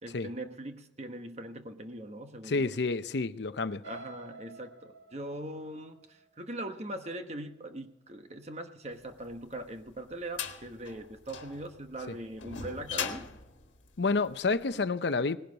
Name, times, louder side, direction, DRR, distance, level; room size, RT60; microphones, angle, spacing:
voice 1, 0.0-2.7 3.8-13.3, right 1 dB, 35° right, 1.1 m, -41 dB
voice 2, 2.4-3.8 12.1-12.2 14.0-15.4, left 3 dB, 65° left, 0.7 m, -29 dB
sound 1, 3.8-7.8 8.3-8.6 8.9-9.0, right 3 dB, 70° right, 2.4 m, -52 dB
sound 2, 9.3-14.7, left 7 dB, 90° left, 1.5 m, -40 dB
19.0 x 11.5 x 4.1 m
head